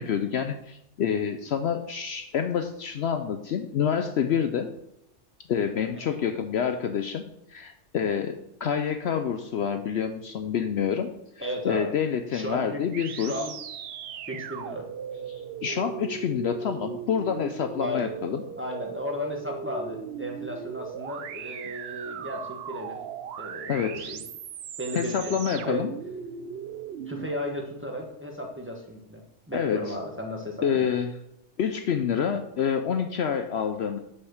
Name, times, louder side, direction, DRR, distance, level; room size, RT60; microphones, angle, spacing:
voice 1, 0.0-4.7 5.5-7.2 7.5-11.1 11.6-13.4 15.3-18.4 23.7-24.2 24.9-25.9 29.5-29.9 30.6-31.1 31.6-34.0, left 7 dB, 65° left, 7 dB, 0.8 m, -27 dB
voice 2, 5.9-6.2 11.4-11.9 12.3-13.5 14.3-14.8 17.8-18.1 18.6-23.0 23.4-24.2 24.8-25.8 27.0-29.2 29.5-30.9, equal, 10° right, 0 dB, 1.3 m, -35 dB
sound 1, 12.9-27.3, right 7 dB, 60° right, 0.8 m, -38 dB
6.8 x 5.7 x 6.4 m, 0.79 s
omnidirectional pair, 1.3 m